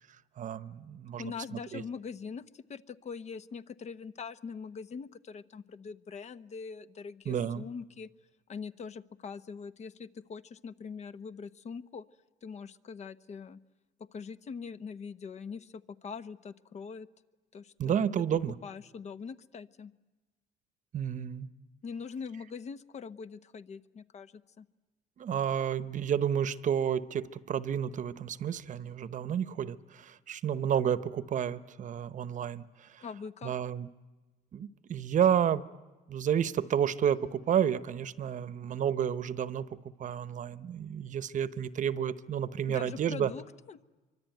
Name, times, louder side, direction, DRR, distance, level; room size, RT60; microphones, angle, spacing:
voice 1, 0.4-1.8 7.3-7.6 17.8-18.5 20.9-21.5 25.2-33.0 33.4-33.9 34.5-35.6 36.1-39.7 40.0-43.3, right 9 dB, 50° right, 15 dB, 1.0 m, -31 dB
voice 2, 1.2-8.1 8.5-12.0 12.4-13.6 14.0-17.1 17.5-18.1 18.6-19.9 21.8-24.7 33.0-33.5 42.7-43.8, left 5 dB, 40° left, 13 dB, 0.9 m, -42 dB
25.5 x 24.0 x 9.2 m, 1.2 s
cardioid pair, 110°, 17 cm